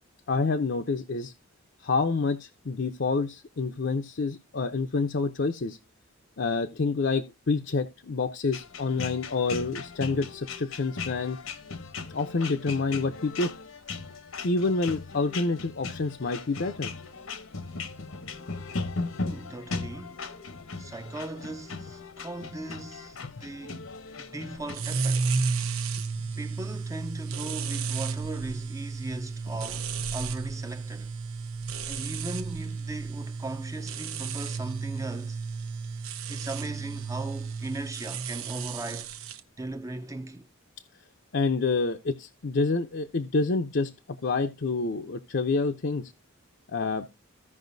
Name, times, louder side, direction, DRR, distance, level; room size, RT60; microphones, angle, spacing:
voice 1, 0.3-1.3 1.8-5.8 6.4-11.4 12.1-13.5 14.4-16.9 23.2-23.3 41.3-46.1 46.7-47.1, left 3 dB, 55° left, 0.6 m, -28 dB
sound 1, 8.5-24.8, left 4 dB, 70° left, 0.9 m, -38 dB
voice 2, 19.2-20.2 20.8-23.9 24.2-25.3 26.3-31.1 31.9-35.4 36.3-39.1 39.6-40.5, right 2 dB, 15° right, 0.5 m, -38 dB
sound 2, 24.7-39.4, right 4 dB, 80° right, 0.9 m, -33 dB
15.5 x 5.4 x 2.6 m
head